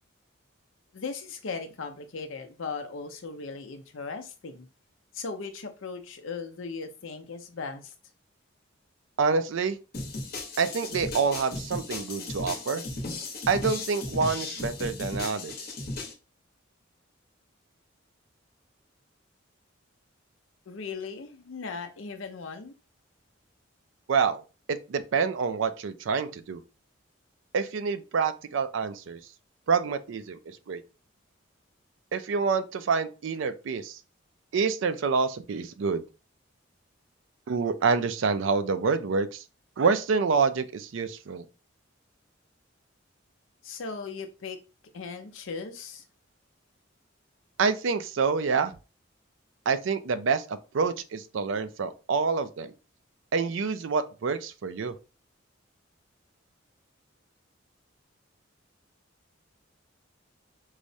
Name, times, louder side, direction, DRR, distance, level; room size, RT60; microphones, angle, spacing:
voice 1, 0.9-4.7 5.1-7.9 20.7-22.7 43.6-44.6 44.9-46.0, left 4 dB, 75° left, 0.6 m, -38 dB
voice 2, 9.2-9.8 10.6-12.8 13.5-15.7 24.1-24.4 24.9-26.6 27.5-29.2 29.7-30.8 32.1-34.0 34.5-36.0 37.5-39.4 39.8-41.5 47.6-48.7 49.7-52.7 53.3-54.9, right 5 dB, 70° right, 0.4 m, -27 dB
sound 1, 9.9-16.1, left 2 dB, 50° left, 0.9 m, -36 dB
4.7 x 2.0 x 2.7 m
head